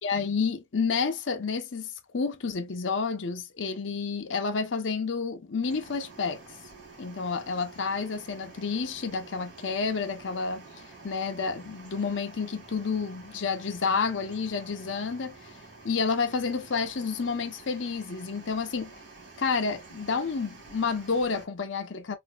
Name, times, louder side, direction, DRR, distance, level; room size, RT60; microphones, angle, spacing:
voice 1, 0.0-6.4 7.0-10.7 11.0-15.5 15.8-18.9 19.4-22.2, left 5 dB, 80° left, 0.7 m, -30 dB
sound 1, 5.6-21.4, right 3 dB, 70° right, 1.4 m, -49 dB
4.1 x 2.6 x 2.3 m
head